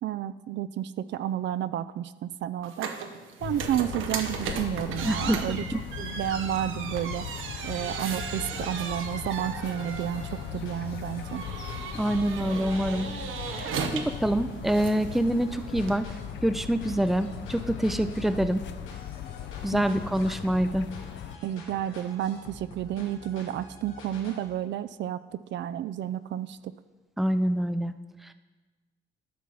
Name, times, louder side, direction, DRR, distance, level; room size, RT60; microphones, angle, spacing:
voice 1, 0.0-2.9 3.4-5.6 6.0-7.3 7.6-11.4 19.7-20.0 21.4-26.6, right 11 dB, 65° right, 14 dB, 0.4 m, -31 dB
sound 1, 2.6-16.0, right 6 dB, 85° right, 0.9 m, -37 dB
sound 2, 3.4-21.4, left 9 dB, 65° left, 0.6 m, -39 dB
voice 2, 5.0-5.8 11.9-13.1 13.5-16.1 16.4-18.6 19.6-20.9 27.2-27.9 28.2-28.3, right 1 dB, ahead, 10 dB, 0.5 m, -26 dB
sound 3, 8.1-24.5, left 2 dB, 85° left, 1.9 m, -47 dB
12.0 x 5.8 x 4.8 m, 1.2 s
cardioid pair, 90°, 20 cm